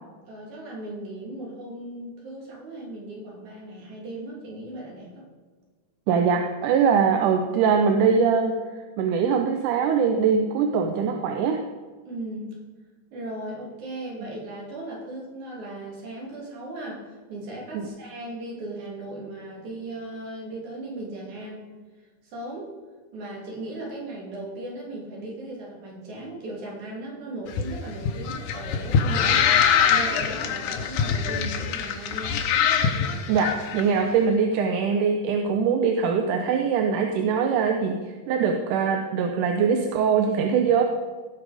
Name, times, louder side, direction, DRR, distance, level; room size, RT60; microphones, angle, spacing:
voice 1, 0.3-5.2 12.0-12.5 13.1-21.7 22.3-22.7 23.1-29.5 29.8-32.4, right 1 dB, 65° right, -3 dB, 4.2 m, -37 dB
voice 2, 6.1-8.6 9.0-11.6 14.2-14.3 33.3-38.0 38.3-40.8, right 6 dB, 80° right, 4 dB, 2.3 m, -22 dB
sound 1, 27.5-33.8, left 7 dB, 75° left, 2.4 m, -23 dB
17.5 x 6.2 x 4.9 m, 1.4 s
omnidirectional pair, 3.7 m